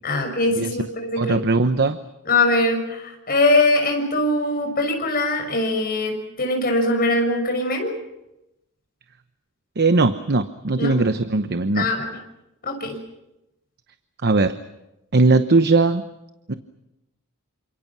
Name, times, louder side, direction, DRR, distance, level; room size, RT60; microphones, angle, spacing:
voice 1, 0.0-1.4 2.2-7.9 10.8-11.0 11.7-12.1 12.6-13.0, left 2 dB, 45° left, 3 dB, 6.4 m, -22 dB
voice 2, 1.2-2.0 9.8-11.8 14.2-14.6 15.1-16.0 16.5-16.6, right 3 dB, 50° right, 10 dB, 0.9 m, -19 dB
28.5 x 26.5 x 6.2 m, 0.93 s
head